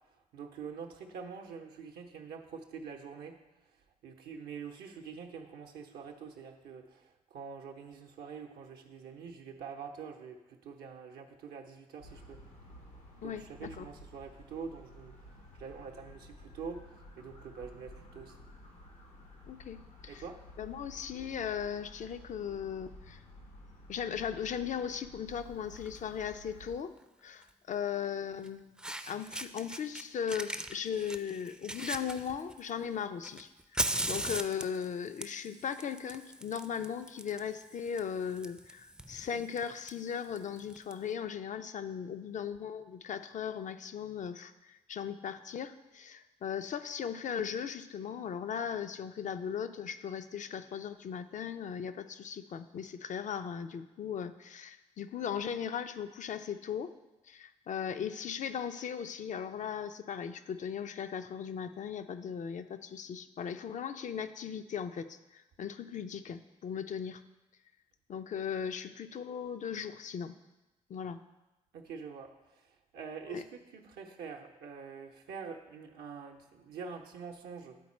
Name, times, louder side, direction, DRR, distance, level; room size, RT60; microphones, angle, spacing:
voice 1, 0.3-3.4 4.0-12.4 13.2-15.1 15.6-18.4 20.1-20.4 71.7-77.8, right 5 dB, 65° right, 3 dB, 0.7 m, -45 dB
sound 1, 12.0-26.8, left 1 dB, 90° left, 1.4 m, -53 dB
voice 2, 13.2-13.9 19.5-20.2 20.6-23.2 23.9-26.9 27.2-28.8 29.1-33.5 34.1-56.9 57.3-67.2 68.1-70.4 70.9-71.2 73.3-73.4, left 7 dB, 45° left, 10 dB, 0.5 m, -38 dB
Fire, 25.8-26.0 27.4-27.5 28.4-28.5 28.8-30.0 30.3-32.7 33.2-40.9, right 1 dB, 5° right, 0.5 m, -39 dB
10.0 x 4.2 x 4.2 m, 1.1 s
hypercardioid pair, 40°, 18 cm